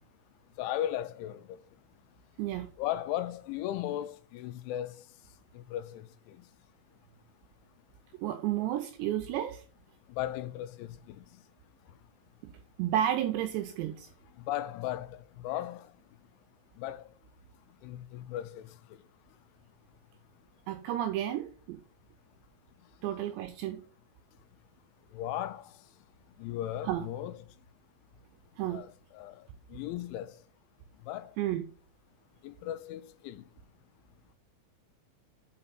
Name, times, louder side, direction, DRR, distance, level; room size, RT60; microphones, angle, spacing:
voice 1, 0.6-1.6 2.8-4.9 5.6-6.0 10.2-11.2 14.5-15.9 16.8-17.0 17.8-18.6 25.1-25.7 26.4-27.4 28.7-29.4 29.7-30.3 31.1-31.3 32.4-33.4, left 12 dB, 85° left, 2.9 m, -36 dB
voice 2, 2.4-2.7 8.2-9.6 12.8-14.1 20.7-21.8 23.0-23.8 26.8-27.1 28.6-28.8 31.4-31.6, right 12 dB, 85° right, 2.5 m, -31 dB
5.9 x 5.3 x 5.7 m
omnidirectional pair, 5.6 m